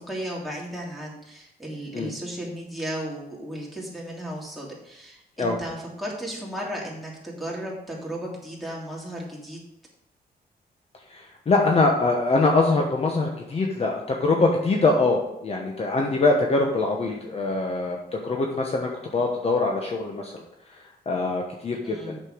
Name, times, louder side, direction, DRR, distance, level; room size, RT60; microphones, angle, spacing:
voice 1, 0.0-9.6 21.8-22.2, right 1 dB, ahead, -3 dB, 3.0 m, -35 dB
voice 2, 11.1-20.4 21.1-22.1, left 3 dB, 35° left, 1 dB, 1.1 m, -23 dB
8.1 x 6.7 x 5.1 m, 0.85 s
cardioid pair, 120°, 17 cm